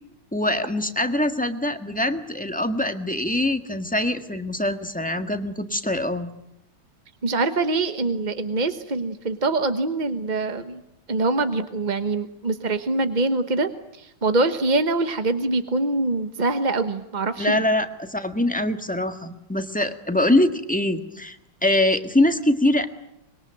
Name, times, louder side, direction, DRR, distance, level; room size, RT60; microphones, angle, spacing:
voice 1, 0.3-6.3 17.4-21.4 21.6-22.9, left 1 dB, 5° left, 7 dB, 1.3 m, -23 dB
voice 2, 7.2-10.8 11.1-17.6, right 2 dB, 30° right, 9 dB, 0.8 m, -24 dB
25.0 x 22.0 x 9.1 m, 0.79 s
omnidirectional pair, 2.4 m